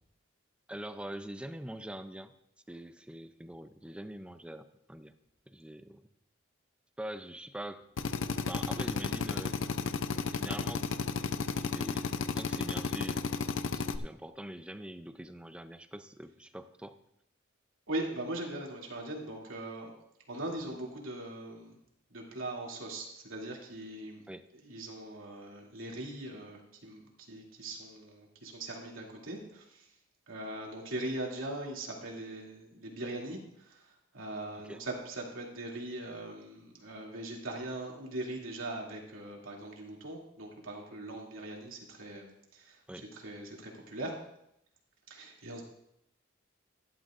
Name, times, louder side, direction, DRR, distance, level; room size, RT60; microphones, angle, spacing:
voice 1, 0.7-2.3 2.7-5.1 5.5-6.1 7.0-7.8 8.5-9.6 10.3-11.1 11.5-12.1 12.4-13.3 13.6-17.0 24.3-24.5 34.6-34.8 42.9-43.1, right 1 dB, 5° right, 10 dB, 0.4 m, -44 dB
Drill, 8.0-14.0, left 4 dB, 65° left, 0.6 m, -33 dB
voice 2, 17.9-19.9 20.3-21.8 22.1-24.2 24.6-29.9 30.3-42.8 43.1-44.1 45.1-45.6, right 1 dB, 80° right, -1 dB, 2.6 m, -40 dB
15.0 x 11.5 x 2.5 m, 0.78 s
head